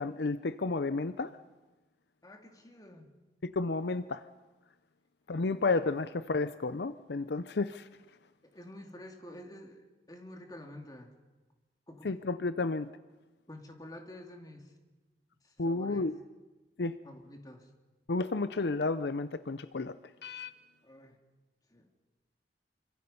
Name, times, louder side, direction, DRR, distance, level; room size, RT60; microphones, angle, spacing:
voice 1, 0.0-1.3 3.4-4.2 5.3-7.9 12.0-12.9 15.6-16.2 16.8-17.0 18.1-19.9 20.2-20.5, left 3 dB, 70° left, 13 dB, 0.6 m, -31 dB
voice 2, 2.2-3.1 8.5-11.1 11.9-12.1 13.5-14.7 15.4-16.1 17.0-17.7 20.8-21.2 21.7-21.9, left 1 dB, 20° left, 3 dB, 2.5 m, -49 dB
26.5 x 25.0 x 5.5 m, 1.2 s
head